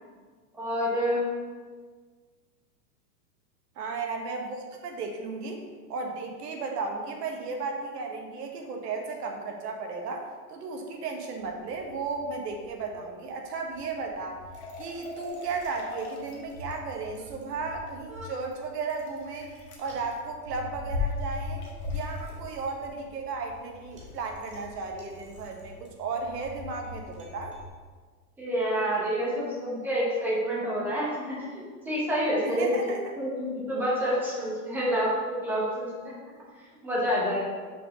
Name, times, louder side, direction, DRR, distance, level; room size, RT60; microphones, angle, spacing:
voice 1, 0.6-1.2 28.4-36.1 36.8-37.4, equal, 5° right, -7 dB, 0.8 m, -28 dB
voice 2, 3.8-5.6 5.9-14.4 14.8-19.5 19.8-21.6 21.9-27.6 32.4-33.0, right 4 dB, 80° right, 2 dB, 1.3 m, -34 dB
Bicycle, 11.4-27.7, left 3 dB, 25° right, 0.4 m, -40 dB
sound 1, 14.5-16.6 18.4-20.0 21.6-22.7, left 3 dB, 40° left, 1.1 m, -44 dB
5.6 x 3.8 x 5.1 m, 1.5 s
supercardioid pair, 170°, 47 cm